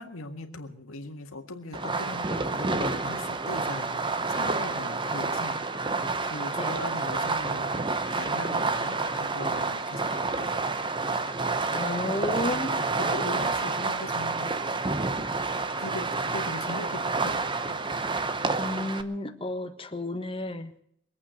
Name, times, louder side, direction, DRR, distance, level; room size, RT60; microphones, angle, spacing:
voice 1, 0.0-5.6 6.2-7.7 8.2-10.6 11.8-14.5 15.8-17.8, left 2 dB, 90° left, 5 dB, 1.9 m, -39 dB
Fireworks, 1.7-19.0, right 3 dB, 25° right, 0.8 m, -29 dB
voice 2, 11.7-12.7 18.6-20.7, left 1 dB, 25° left, 7 dB, 1.2 m, -32 dB
22.5 x 8.5 x 6.3 m, 0.69 s
head